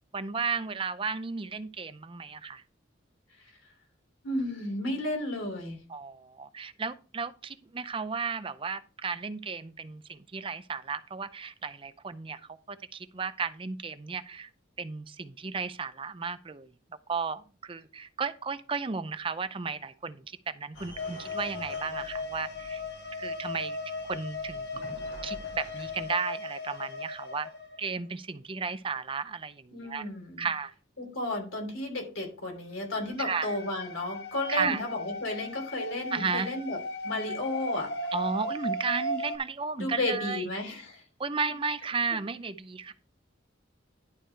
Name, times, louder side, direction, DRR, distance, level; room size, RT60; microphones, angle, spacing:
voice 1, 0.1-2.6 5.9-14.5 14.8-16.7 17.1-22.8 23.1-23.8 24.0-24.9 25.2-27.5 27.8-30.0 30.4-30.7 33.2-33.6 34.5-34.8 36.1-36.5 38.1-40.5 41.2-42.9, right 5 dB, 25° right, 12 dB, 0.5 m, -34 dB
voice 2, 4.2-5.8 29.7-30.5 31.0-36.8 37.0-37.9 39.8-41.0, left 1 dB, 85° left, 3 dB, 3.0 m, -33 dB
sound 1, 20.7-26.1, equal, 70° left, 2.4 m, -49 dB
sound 2, 21.0-27.9 33.1-39.4, left 1 dB, 55° left, 1.4 m, -37 dB
11.5 x 4.8 x 4.4 m, 0.36 s
head